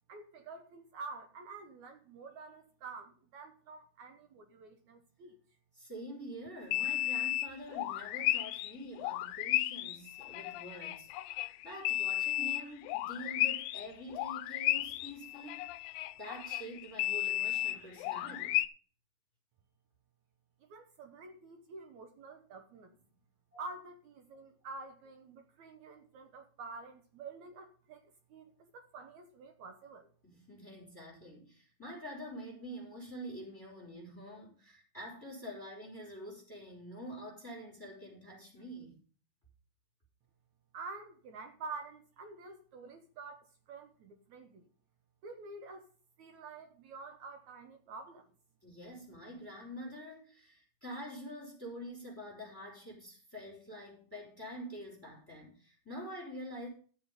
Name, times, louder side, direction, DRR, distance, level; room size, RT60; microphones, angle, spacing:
voice 1, 0.1-5.4 20.6-22.9 23.6-30.1 40.7-44.6 45.2-45.8 46.2-48.3, right 4 dB, 70° right, 1.9 m, -48 dB
voice 2, 5.7-15.6 16.1-18.6 23.5-23.6 30.2-39.0 48.6-56.7, equal, 5° left, 4.9 m, -46 dB
sound 1, 6.7-8.7 9.0-13.9 14.1-18.7, left 15 dB, 80° left, 2.0 m, -34 dB
12.5 x 7.2 x 5.4 m
omnidirectional pair, 4.6 m